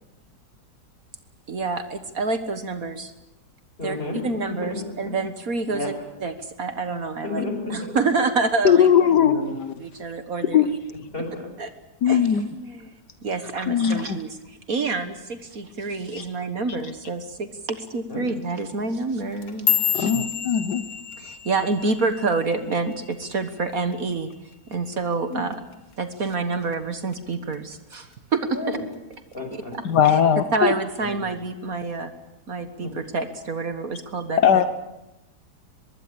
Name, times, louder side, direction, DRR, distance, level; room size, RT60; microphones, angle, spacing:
voice 1, 1.5-3.1 3.8-4.0 4.2-5.9 6.2-7.4 7.7-9.2 9.8-10.8 11.6-11.7 12.0-12.9 13.2-20.1 21.2-24.3 24.7-25.6 26.0-28.8 29.7-30.2 30.5-32.1 32.5-34.6, right 3 dB, 55° right, 9 dB, 1.8 m, -28 dB
voice 2, 3.8-4.2 4.5-4.8 5.0-5.1 5.7-5.9 7.2-7.9 9.1-9.5 11.1-11.5 18.1-18.2 19.9-20.2 25.3-25.4 28.5-28.8 29.3-29.7 31.0-31.3 32.8-32.9, left 2 dB, 30° left, 4 dB, 6.6 m, -32 dB
voice 3, 8.7-9.7 10.5-10.7 12.0-12.4 13.7-14.2 16.1-16.2 19.9-20.9 29.9-30.7 34.4-34.7, left 8 dB, 75° left, 10 dB, 1.6 m, -19 dB
sound 1, 19.2-23.6 23.9-24.3 24.7-25.1 25.5-25.7 26.3-26.7 27.1-27.9 28.3-28.7 29.5-29.6, left 8 dB, 60° left, 2.1 m, -29 dB
24.0 x 21.5 x 8.6 m, 0.95 s
omnidirectional pair, 1.8 m